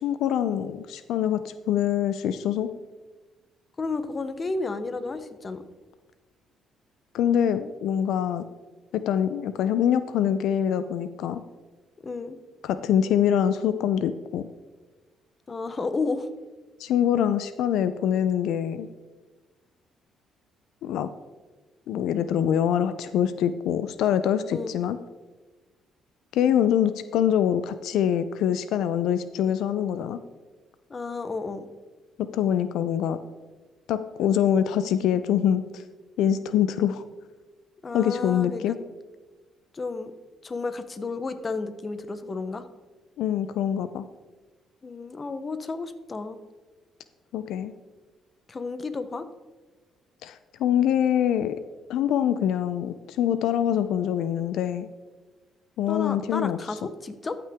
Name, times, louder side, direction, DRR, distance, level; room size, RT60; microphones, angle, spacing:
voice 1, 0.0-2.7 7.1-8.4 8.9-11.4 12.6-14.5 16.8-18.9 20.8-21.1 21.9-25.0 26.3-30.2 32.3-33.2 33.9-35.8 36.2-37.0 37.9-38.8 43.2-44.0 47.3-47.7 50.2-51.6 51.9-54.9 55.8-56.6, left 9 dB, 80° left, 12 dB, 0.4 m, -24 dB
voice 2, 3.8-5.6 12.0-12.4 15.5-16.3 24.5-24.8 30.9-31.7 37.8-38.8 39.7-40.1 40.4-42.7 44.8-46.4 48.5-49.3 55.9-57.4, left 3 dB, 30° left, 11 dB, 0.7 m, -32 dB
13.5 x 5.9 x 3.5 m, 1.2 s
cardioid pair, 95°, 0 cm